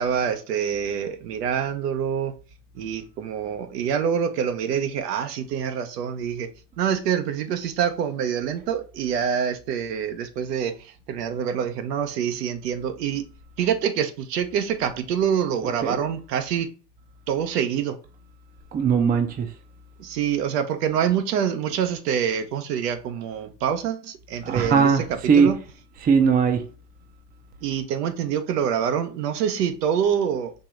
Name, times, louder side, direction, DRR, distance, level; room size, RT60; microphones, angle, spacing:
voice 1, 0.0-2.3 2.7-6.5 6.8-13.3 13.6-16.7 17.3-18.0 20.0-24.9 25.4-25.5 27.6-30.5, right 8 dB, 75° right, 0.9 m, -26 dB
voice 2, 18.7-19.5 24.4-25.5 26.0-26.7, right 6 dB, 20° right, 0.6 m, -19 dB
4.4 x 3.0 x 3.2 m
hypercardioid pair, 110°, 48 cm